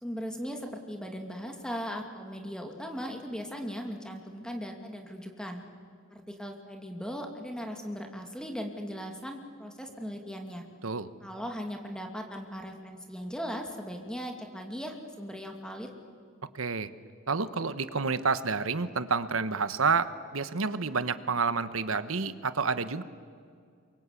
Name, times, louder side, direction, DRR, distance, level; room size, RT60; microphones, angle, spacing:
voice 1, 0.0-5.6 6.1-10.6 11.2-15.9, equal, 5° left, 3 dB, 2.4 m, -38 dB
voice 2, 16.5-16.9 17.3-23.0, right 4 dB, 70° right, 13 dB, 1.1 m, -29 dB
27.0 x 24.0 x 8.4 m, 2.2 s
head